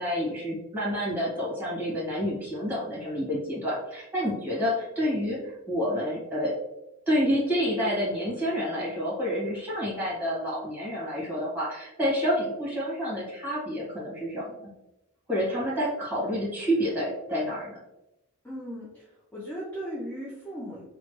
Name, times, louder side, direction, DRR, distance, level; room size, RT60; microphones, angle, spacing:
voice 1, 0.0-6.5 7.1-14.7 15.3-17.8, equal, 10° right, -7 dB, 1.3 m, -29 dB
voice 2, 18.4-20.8, equal, 10° left, -7 dB, 0.4 m, -37 dB
3.1 x 2.2 x 3.0 m, 0.93 s
head